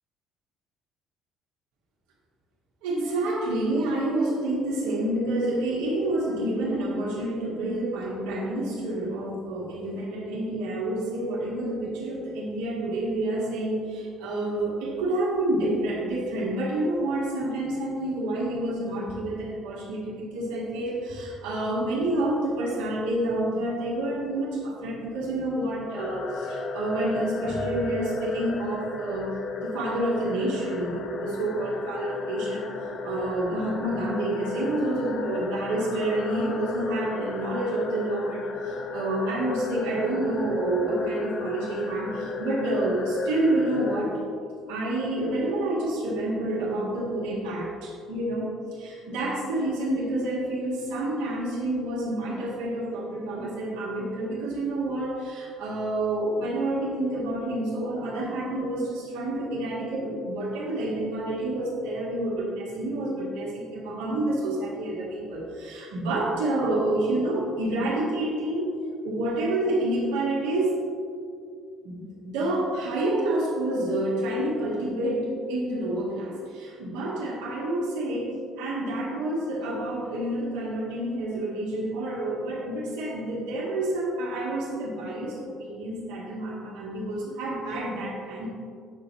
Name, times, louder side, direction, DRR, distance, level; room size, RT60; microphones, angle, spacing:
voice 1, 2.8-32.7 33.0-44.2 44.7-68.7 69.0-70.8 71.8-88.5, right 1 dB, 65° right, -4 dB, 1.7 m, -28 dB
sound 1, 26.0-44.1, left 3 dB, 50° left, 0.7 m, -35 dB
8.9 x 6.5 x 3.1 m, 2.4 s
figure-of-eight pair, 50°, 0 cm